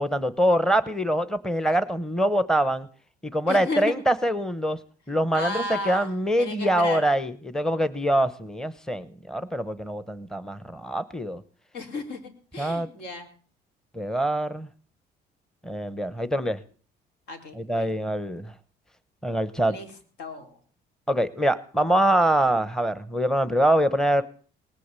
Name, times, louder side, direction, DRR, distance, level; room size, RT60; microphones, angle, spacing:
voice 1, 0.0-2.9 3.2-4.8 5.1-11.4 12.6-12.9 13.9-14.7 15.6-16.6 17.5-18.5 19.2-19.8 21.1-24.2, right 1 dB, 5° left, 15 dB, 1.0 m, -24 dB
voice 2, 3.5-3.9 5.3-7.0 11.7-13.3 17.3-17.9 19.7-19.9 20.2-20.6, left 2 dB, 75° left, 5 dB, 4.2 m, -34 dB
19.5 x 8.3 x 8.3 m, 0.43 s
cardioid pair, 110°, 17 cm